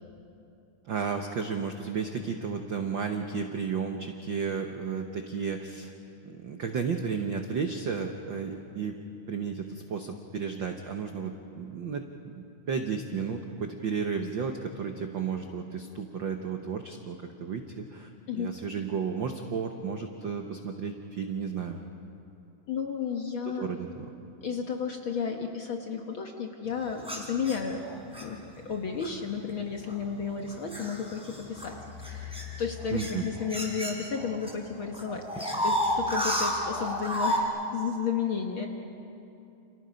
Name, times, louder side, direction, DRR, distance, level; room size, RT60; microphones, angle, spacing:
voice 1, 0.9-5.9 6.3-9.0 9.3-21.8 23.6-24.1 32.9-33.2, right 6 dB, 70° right, 4 dB, 1.1 m, -33 dB
voice 2, 22.7-23.7 24.4-27.9 28.2-28.4 28.6-31.8 32.0-38.7, left 6 dB, 55° left, 3 dB, 1.5 m, -33 dB
sound 1, 27.0-28.3 29.0-29.3 29.9-34.5 34.8-37.4, equal, ahead, 4.0 m, -31 dB
30.0 x 28.5 x 5.2 m, 2.8 s
omnidirectional pair, 3.6 m